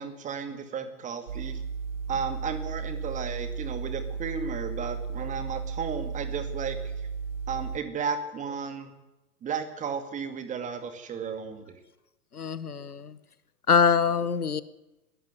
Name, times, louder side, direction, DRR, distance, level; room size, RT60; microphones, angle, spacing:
voice 1, 0.0-1.6 2.1-6.8 7.5-8.9 9.4-11.8, right 6 dB, 15° right, 9 dB, 2.1 m, -34 dB
sound 1, 1.3-7.8, right 5 dB, 60° right, 1.0 m, -34 dB
voice 2, 12.3-13.2 13.7-14.6, left 6 dB, 75° left, 17 dB, 1.3 m, -24 dB
21.5 x 13.0 x 9.3 m, 0.99 s
figure-of-eight pair, 110°, 45 cm